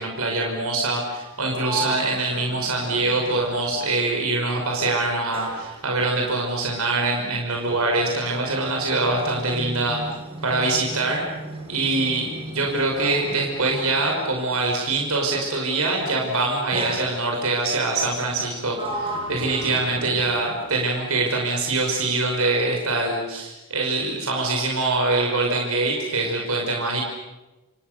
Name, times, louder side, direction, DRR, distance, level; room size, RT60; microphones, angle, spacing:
voice 1, 0.0-10.0 10.4-11.2 11.7-27.0, right 2 dB, 75° right, 0 dB, 5.7 m, -24 dB
Sliding door, 1.1-4.4 4.7-14.9 15.8-16.1 16.7-17.6 18.2-20.8, right 1 dB, 25° right, 7.1 m, -36 dB
29.5 x 27.0 x 6.9 m, 1.1 s
head